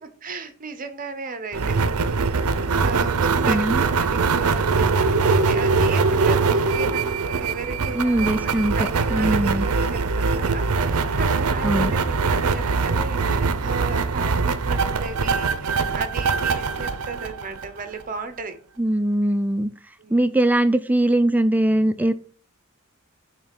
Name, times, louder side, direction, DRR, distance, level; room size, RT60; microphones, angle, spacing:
voice 1, 0.0-1.8 2.0-18.6 20.0-20.3, right 4 dB, 40° right, 0.9 m, -35 dB
sound 1, 1.5-18.0, right 4 dB, 70° right, 0.6 m, -22 dB
voice 2, 3.5-3.8 7.9-9.7 11.6-11.9 18.8-19.7 20.1-22.1, right 1 dB, 5° right, 0.3 m, -21 dB
7.1 x 3.2 x 5.9 m
head